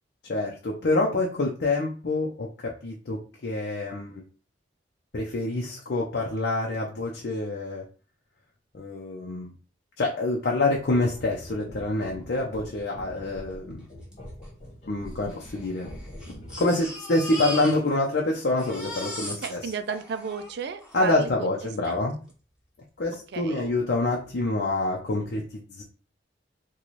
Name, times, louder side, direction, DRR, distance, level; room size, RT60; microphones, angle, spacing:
voice 1, 0.2-4.2 5.1-7.8 8.7-9.5 10.0-13.9 14.9-15.9 16.6-19.6 20.9-22.1 23.0-25.8, left 2 dB, 65° left, -1 dB, 0.6 m, -27 dB
sound 1, 10.6-16.8, equal, 35° left, 1.2 m, -43 dB
Crying sobbing, 14.1-14.2 14.4-14.5 15.3-18.2 18.4-21.0 21.8-21.9 22.3-22.4, left 1 dB, 5° right, 1.3 m, -38 dB
voice 2, 19.4-21.5 23.3-23.7, right 6 dB, 65° right, 11 dB, 0.4 m, -33 dB
3.1 x 2.3 x 4.0 m, 0.38 s
head